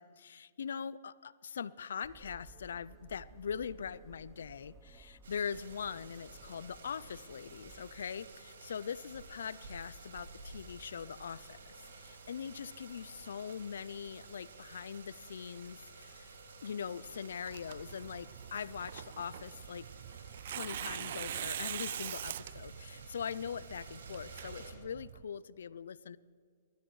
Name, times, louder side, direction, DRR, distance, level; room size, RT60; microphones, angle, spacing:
voice 1, 0.0-16.3 16.6-19.9 20.5-26.2, left 7 dB, 80° left, 19 dB, 0.4 m, -42 dB
sound 1, 2.0-8.0, right 3 dB, 20° right, 0.8 m, -58 dB
sound 2, 5.2-24.7, right 3 dB, 80° right, 2.3 m, -53 dB
Tearing, 17.5-25.2, right 10 dB, 60° right, 0.4 m, -43 dB
21.0 x 13.5 x 3.1 m, 2.3 s
hypercardioid pair, 140°, 0 cm